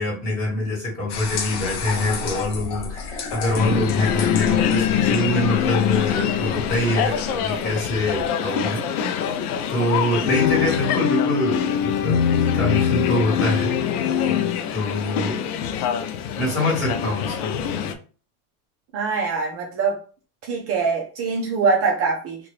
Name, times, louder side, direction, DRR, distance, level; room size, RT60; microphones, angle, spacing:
voice 1, 0.0-8.8 9.7-12.2 12.5-13.7 14.7-15.4 16.3-17.6, left 1 dB, 15° left, 1.6 m, -25 dB
sound 1, 1.1-8.3, left 4 dB, 35° left, 0.6 m, -32 dB
sound 2, 3.6-17.9, left 8 dB, 75° left, 0.6 m, -23 dB
voice 2, 18.9-20.0 20.4-22.4, right 4 dB, 30° right, 0.6 m, -23 dB
2.8 x 2.5 x 3.2 m
supercardioid pair, 145°, 46 cm